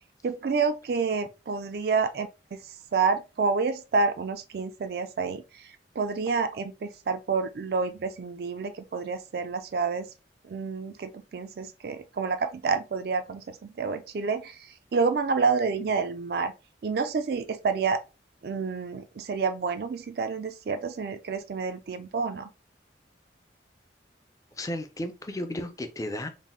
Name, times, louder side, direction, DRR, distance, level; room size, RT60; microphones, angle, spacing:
voice 1, 0.2-2.6 2.9-10.1 10.4-16.5 16.8-18.0 18.4-22.5, right 4 dB, 55° right, 0.3 m, -29 dB
voice 2, 24.5-26.3, left 1 dB, 20° left, 0.4 m, -34 dB
4.0 x 2.1 x 3.6 m
head